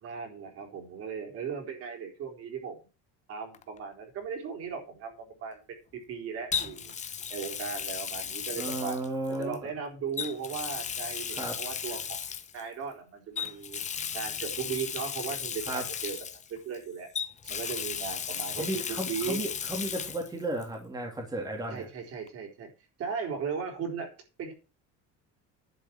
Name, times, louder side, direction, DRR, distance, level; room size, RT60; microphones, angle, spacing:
voice 1, 0.0-2.9 3.3-6.9 7.3-9.0 9.3-12.2 12.5-13.8 14.1-16.2 16.5-17.1 17.4-19.4 21.7-22.7 23.0-24.1 24.4-24.5, right 6 dB, 45° right, 2 dB, 4.2 m, -37 dB
Water tap faucet, 3.5-3.8 6.5-9.6 10.1-12.6 13.4-16.8 17.1-20.3 20.6-20.7 22.3-22.4, left 7 dB, 20° left, 0.9 m, -35 dB
voice 2, 8.6-9.6 11.3-11.5 15.7-15.8 18.5-21.9, right 1 dB, 10° right, 0 dB, 2.6 m, -34 dB
11.5 x 5.8 x 7.3 m, 0.33 s
cardioid pair, 165°, 32 cm